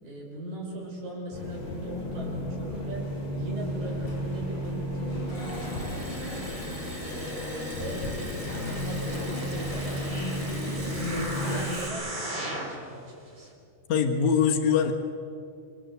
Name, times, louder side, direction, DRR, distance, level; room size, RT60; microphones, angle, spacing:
voice 1, 0.0-6.6 7.0-13.5, right 1 dB, 85° right, 0 dB, 6.9 m, -39 dB
sound 1, 1.3-11.6, left 1 dB, 50° left, 7.6 m, -33 dB
Liquid, 3.8-11.9, right 1 dB, 10° right, 2.4 m, -43 dB
sound 2, 9.3-12.8 13.4-13.5, right 1 dB, 30° right, 4.4 m, -38 dB
voice 2, 13.9-14.9, left 7 dB, 65° left, 2 dB, 2.8 m, -22 dB
28.5 x 25.5 x 8.0 m, 2.5 s
omnidirectional pair, 3.8 m